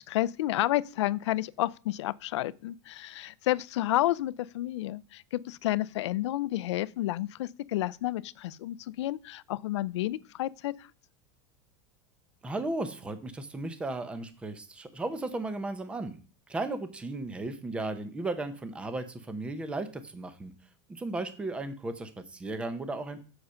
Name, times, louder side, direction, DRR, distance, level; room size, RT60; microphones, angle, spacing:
voice 1, 0.0-10.9, left 15 dB, 85° left, 0.5 m, -30 dB
voice 2, 12.4-16.2 16.5-20.5 20.9-23.2, right 2 dB, 10° right, 0.7 m, -35 dB
7.9 x 6.4 x 5.6 m
supercardioid pair, 165°, 14 cm